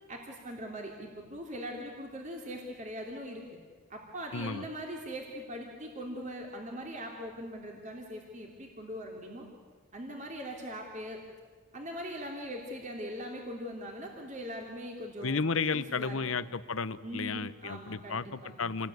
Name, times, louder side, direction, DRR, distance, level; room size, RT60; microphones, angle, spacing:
voice 1, 0.1-3.4 3.9-9.4 9.9-11.2 11.7-15.4 15.7-16.4 17.0-18.7, equal, 35° right, 1 dB, 3.2 m, -41 dB
voice 2, 4.3-4.6 15.2-18.9, left 4 dB, 80° left, 14 dB, 1.0 m, -33 dB
28.0 x 20.5 x 9.4 m, 1.5 s
head